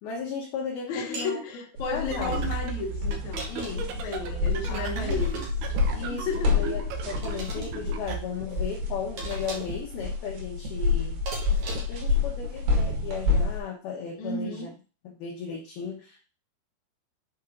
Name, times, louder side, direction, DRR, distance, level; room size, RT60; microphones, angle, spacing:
voice 1, 0.0-2.5 3.5-3.8 4.7-5.2 5.9-11.2 11.9-14.7 15.0-16.2, left 6 dB, 70° left, -2 dB, 2.6 m, -36 dB
voice 2, 0.9-3.6 3.9-5.5 6.0-6.6 14.2-14.7, left 3 dB, 50° left, 0 dB, 2.4 m, -33 dB
sound 1, 1.1-1.4 3.1-3.9 5.1-5.8 7.2-7.7 9.2-9.8 11.3-12.1, right 3 dB, 50° right, 2.9 m, -39 dB
sound 2, 1.8-13.6, left 4 dB, 90° right, 4.4 m, -29 dB
sound 3, 2.0-8.2, right 9 dB, 70° right, 2.5 m, -35 dB
7.9 x 5.5 x 3.9 m, 0.36 s
omnidirectional pair, 5.4 m